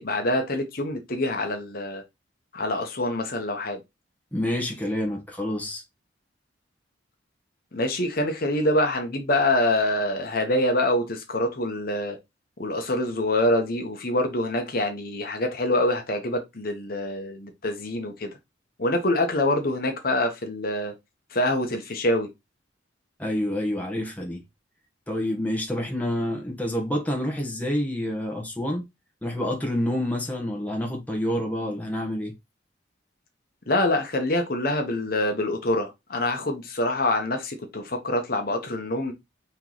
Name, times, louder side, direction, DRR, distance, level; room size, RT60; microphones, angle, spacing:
voice 1, 0.0-2.0 2.5-3.8 7.7-12.2 12.6-18.3 18.8-20.9 21.3-22.3 33.7-39.1, left 1 dB, 50° left, 1.0 m, -25 dB
voice 2, 4.3-5.8 23.2-24.4 25.1-28.8 29.2-32.3, left 1 dB, 10° left, 1.1 m, -28 dB
4.4 x 3.1 x 3.9 m
head